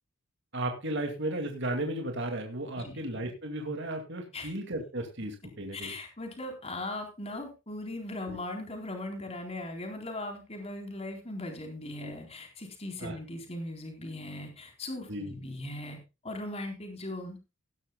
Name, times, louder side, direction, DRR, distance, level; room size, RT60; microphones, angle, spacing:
voice 1, 0.5-5.9 8.3-8.4 12.0-12.1 13.0-13.2 15.1-15.3, right 1 dB, 60° right, 4 dB, 2.4 m, -34 dB
voice 2, 5.7-16.0 16.2-17.4, left 1 dB, 30° left, 3 dB, 4.0 m, -39 dB
17.5 x 12.0 x 2.3 m, 0.27 s
head